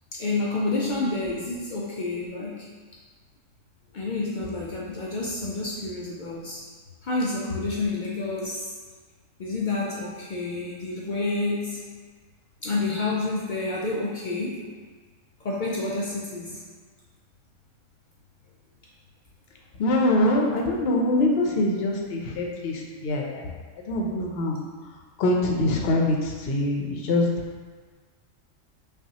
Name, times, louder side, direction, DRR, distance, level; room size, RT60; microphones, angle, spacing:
voice 1, 0.1-2.7 3.9-6.6 7.0-8.8 9.4-11.8 12.6-14.7 15.4-16.6, left 3 dB, 75° left, -4 dB, 0.4 m, -29 dB
voice 2, 19.8-23.4 23.9-24.6 25.2-27.3, left 1 dB, 60° left, 0 dB, 0.8 m, -24 dB
5.4 x 2.5 x 2.8 m, 1.4 s
omnidirectional pair, 1.3 m